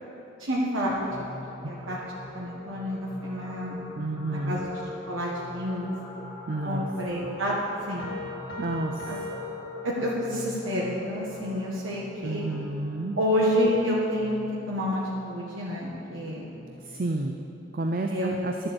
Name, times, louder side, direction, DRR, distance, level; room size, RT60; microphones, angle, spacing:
voice 1, 0.4-0.9 1.2-1.3 1.6-2.0 2.3-3.8 4.3-4.7 5.1-5.9 6.6-7.5 7.9-8.1 9.1-9.2 9.8-12.5 13.2-14.4 14.7-15.0 15.2-16.4 18.1-18.4, equal, 85° right, -5 dB, 1.6 m, -28 dB
sound 1, 0.9-17.2, left 1 dB, ahead, 1.8 m, -44 dB
voice 2, 4.0-4.6 6.5-6.9 8.6-9.1 12.2-13.2 16.9-17.4 17.7-18.5, right 2 dB, 45° right, 4 dB, 0.5 m, -30 dB
sound 2, 8.0-10.5, left 3 dB, 70° left, 1.8 m, -39 dB
11.5 x 7.7 x 7.9 m, 2.9 s
head